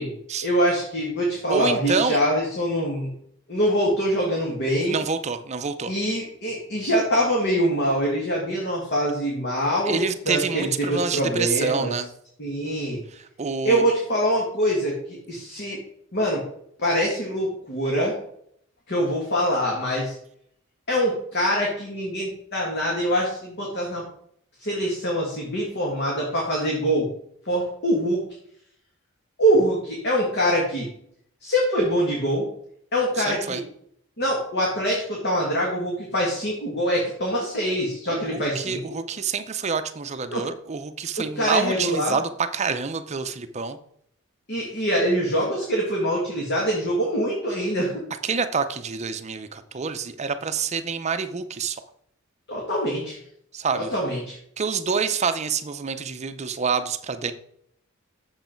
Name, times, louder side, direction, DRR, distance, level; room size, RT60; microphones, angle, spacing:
voice 1, 0.4-3.1 3.5-4.9 5.9-11.9 12.4-13.0 13.6-15.8 16.1-16.4 16.8-18.2 18.9-20.2 20.9-24.0 24.6-27.1 27.5-28.2 29.4-30.9 31.4-32.5 32.9-33.6 34.2-38.8 40.3-40.4 41.2-42.2 44.5-48.0 52.5-53.2 53.7-54.4, equal, 50° left, -2 dB, 1.9 m, -24 dB
voice 2, 1.5-2.2 4.9-5.9 9.9-12.1 13.1-13.8 33.2-33.6 38.1-43.8 48.2-51.8 53.5-53.9 54.6-57.3, right 5 dB, 30° right, 9 dB, 0.6 m, -27 dB
7.8 x 7.0 x 4.5 m, 0.69 s
head